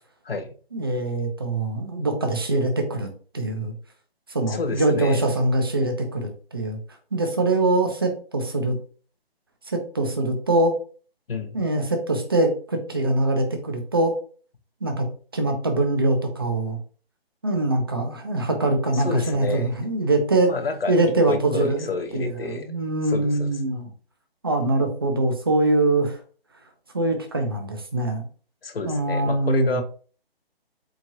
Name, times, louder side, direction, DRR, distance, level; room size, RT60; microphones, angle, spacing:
voice 1, 0.7-3.1 3.3-3.7 4.3-6.8 7.1-8.8 9.7-10.8 11.5-14.1 14.8-15.1 15.3-16.8 17.4-20.5 20.9-23.9 24.4-26.2 26.9-28.2 28.8-29.8, right 2 dB, 25° right, 5 dB, 0.4 m, -23 dB
voice 2, 4.5-5.2 11.3-11.6 18.9-19.7 20.4-21.0 21.2-22.7 23.1-23.5 28.6-29.8, left 3 dB, 65° left, 8 dB, 0.8 m, -29 dB
4.6 x 2.5 x 2.7 m, 0.41 s
figure-of-eight pair, 145°, 31 cm